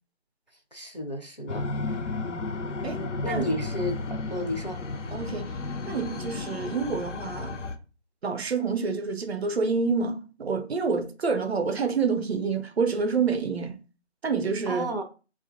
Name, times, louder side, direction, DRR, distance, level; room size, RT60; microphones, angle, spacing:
voice 1, 0.7-1.7 3.2-4.8 14.7-15.0, equal, 40° left, 0.4 m, -32 dB
sound 1, 1.5-7.8, left 3 dB, 85° left, 0.6 m, -33 dB
voice 2, 2.8-3.5 5.1-5.5 5.9-7.6 8.2-13.8 14.2-14.9, right 5 dB, 65° right, 0.5 m, -28 dB
4.9 x 2.4 x 2.4 m
figure-of-eight pair, 170°, 35 cm